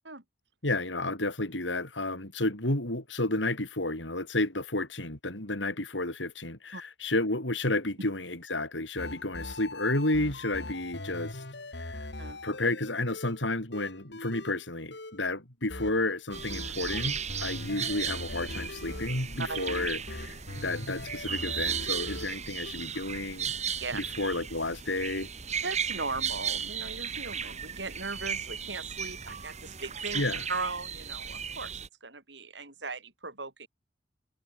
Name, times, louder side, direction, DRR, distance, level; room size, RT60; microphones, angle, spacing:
voice 1, 0.6-11.4 11.7-12.1 12.4-23.5 23.9-25.3 30.1-30.4, left 2 dB, 90° left, 5.8 m, -31 dB
sound 1, 9.0-13.4 13.7-14.7 14.9-15.2 15.7-22.7, left 1 dB, 65° left, 4.1 m, -41 dB
sound 2, 16.3-31.9, right 7 dB, 40° right, 2.5 m, -36 dB
voice 2, 25.6-30.2 30.5-33.7, right 3 dB, 70° right, 5.8 m, -38 dB
head